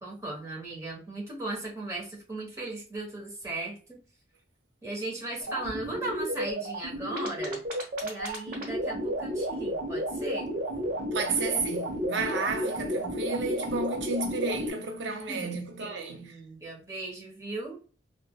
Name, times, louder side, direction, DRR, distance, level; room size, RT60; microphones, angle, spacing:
voice 1, 0.0-4.0 4.8-7.6 8.0-10.5 15.0-15.5 15.8-17.8, right 2 dB, 20° right, 1.0 m, -37 dB
sound 1, 5.4-14.7, equal, 50° right, 1.0 m, -32 dB
voice 2, 11.1-16.4, right 3 dB, 80° right, 0.5 m, -32 dB
3.6 x 2.1 x 2.2 m
head